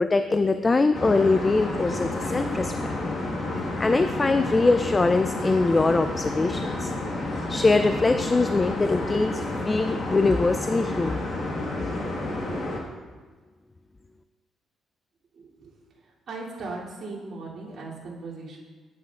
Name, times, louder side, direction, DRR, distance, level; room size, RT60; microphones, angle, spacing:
voice 1, 0.0-2.7 3.8-6.9 7.5-11.2, left 3 dB, 25° left, 9 dB, 0.3 m, -22 dB
sound 1, 0.9-12.8, left 2 dB, 50° left, 1.5 m, -30 dB
voice 2, 15.3-15.7 16.0-18.6, right 3 dB, 60° right, -6 dB, 2.8 m, -38 dB
10.0 x 10.0 x 2.4 m, 1.4 s
cardioid pair, 90°, 0 cm